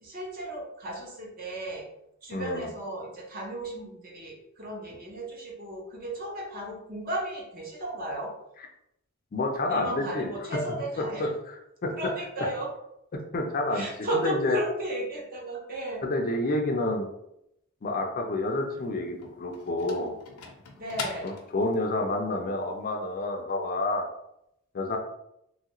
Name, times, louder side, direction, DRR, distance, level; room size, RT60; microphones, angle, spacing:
voice 1, 0.0-1.9 2.2-8.3 9.7-11.3 12.0-12.7 13.7-16.0 20.7-21.3, right 1 dB, 40° right, -1 dB, 0.7 m, -34 dB
voice 2, 2.3-2.7 9.3-10.3 11.2-12.1 13.3-13.9 14.2-14.6 16.0-17.1 17.8-20.1 21.2-24.1 24.7-25.0, left 2 dB, 40° left, 3 dB, 0.4 m, -29 dB
sound 1, 18.5-22.0, left 4 dB, 85° left, 0.5 m, -42 dB
3.0 x 2.4 x 2.9 m, 0.80 s
head